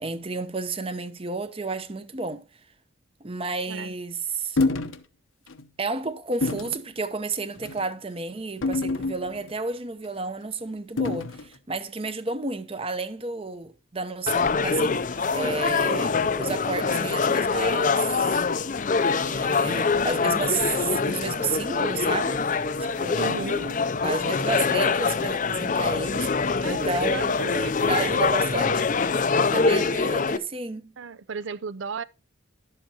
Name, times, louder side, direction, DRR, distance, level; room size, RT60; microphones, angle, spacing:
voice 1, 0.0-2.4 3.2-4.6 5.8-18.3 19.2-22.4 22.8-27.3 27.8-28.8 29.5-30.9, right 3 dB, 30° right, 0.8 m, -32 dB
sound 1, 4.6-5.0 5.5-5.6 6.4-6.8 7.6-7.9 8.6-9.5 11.0-11.5, left 3 dB, 85° left, 0.9 m, -27 dB
sound 2, 14.3-30.4, left 4 dB, 40° left, 0.5 m, -24 dB
voice 2, 23.2-23.6 26.6-28.4 31.0-32.0, right 5 dB, 75° right, 0.5 m, -35 dB
11.5 x 7.8 x 2.9 m
head